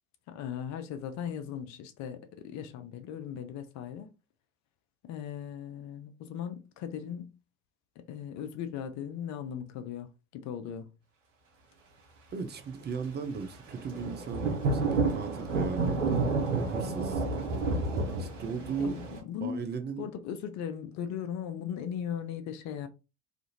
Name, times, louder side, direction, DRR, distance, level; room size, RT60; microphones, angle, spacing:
voice 1, 0.3-4.1 5.0-7.3 8.1-10.1 10.3-10.9 16.8-17.0 17.7-17.8 18.8-19.6 20.0-22.9, left 8 dB, 50° left, 0.5 m, -38 dB
voice 2, 12.3-16.2 16.5-17.2 18.2-18.9 19.4-20.1, right 5 dB, 30° right, 0.5 m, -37 dB
Thunder / Rain, 13.7-19.2, right 3 dB, 85° right, 0.6 m, -30 dB
2.5 x 2.4 x 2.8 m
figure-of-eight pair, 55°, 36 cm